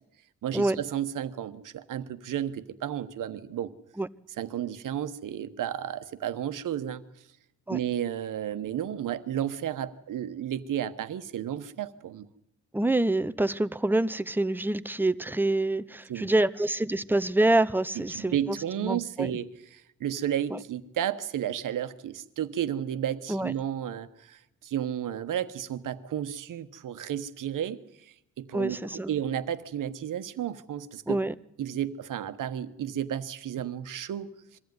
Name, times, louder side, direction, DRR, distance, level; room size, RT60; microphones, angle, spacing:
voice 1, 0.4-3.7 4.4-7.0 7.7-12.3 16.1-16.3 18.1-31.2 31.6-34.6, right 10 dB, 80° right, 1.1 m, -32 dB
voice 2, 12.7-19.3 20.5-20.6 23.3-23.5 28.5-29.1 31.1-31.3, right 2 dB, 5° right, 0.7 m, -26 dB
23.0 x 14.5 x 9.5 m
cardioid pair, 95°, 31 cm